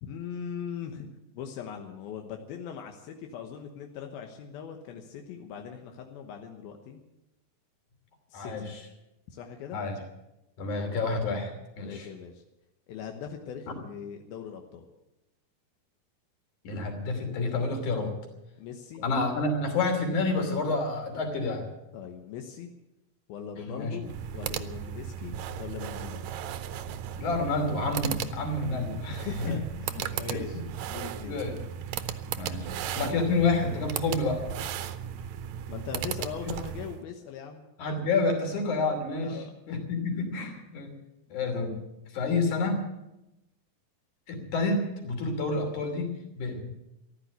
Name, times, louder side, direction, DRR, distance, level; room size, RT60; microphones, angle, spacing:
voice 1, 0.0-7.0 8.3-8.6 9.3-9.8 11.8-12.4 12.9-14.9 18.6-19.0 21.9-22.7 23.3-24.1 24.3-26.2 29.1-30.6 30.9-31.4 35.7-37.6 39.2-39.5, left 7 dB, 85° left, 3 dB, 3.0 m, -40 dB
voice 2, 8.3-8.8 9.7-10.0 10.6-12.1 16.6-18.1 19.0-21.7 23.7-24.0 27.2-29.6 30.2-30.4 31.2-31.6 32.3-32.7 32.9-34.4 37.8-41.0 41.3-41.8 42.1-42.8 44.3-46.6, left 3 dB, 55° left, 4 dB, 4.2 m, -29 dB
sound 1, 24.0-37.0, right 9 dB, 75° right, 1.7 m, -36 dB
14.5 x 12.0 x 8.1 m, 0.93 s
omnidirectional pair, 4.2 m